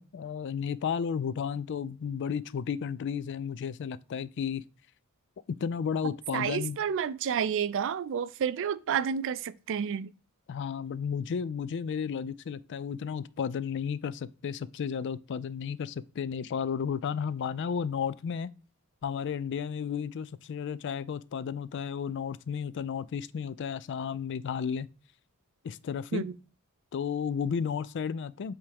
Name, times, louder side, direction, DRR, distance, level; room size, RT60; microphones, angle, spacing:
voice 1, 0.0-4.6 5.5-6.8 10.5-18.5 19.0-24.9 25.6-26.2 26.9-28.5, left 7 dB, 55° left, 0.3 m, -33 dB
voice 2, 6.0-10.1 26.1-26.3, right 7 dB, 60° right, 0.4 m, -30 dB
8.2 x 3.5 x 3.4 m
head